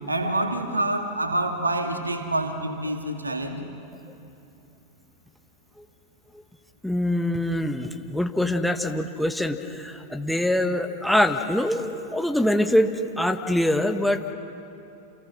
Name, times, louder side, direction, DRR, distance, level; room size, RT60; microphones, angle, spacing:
voice 1, 0.1-3.6, right 1 dB, 80° right, 4 dB, 2.4 m, -27 dB
voice 2, 6.8-14.3, left 1 dB, ahead, 5 dB, 1.4 m, -24 dB
29.0 x 27.5 x 6.2 m, 2.9 s
figure-of-eight pair, 90°, 0 cm